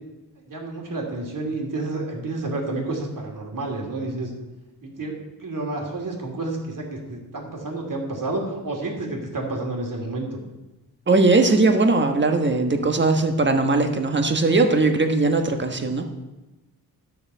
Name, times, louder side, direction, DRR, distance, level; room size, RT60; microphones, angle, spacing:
voice 1, 0.5-4.3 4.8-5.1 5.4-10.3, right 2 dB, 55° right, 0 dB, 2.9 m, -30 dB
voice 2, 11.1-16.0, right 3 dB, 30° right, 5 dB, 1.3 m, -19 dB
12.5 x 6.6 x 5.6 m, 1.1 s
cardioid pair, 80°, 38 cm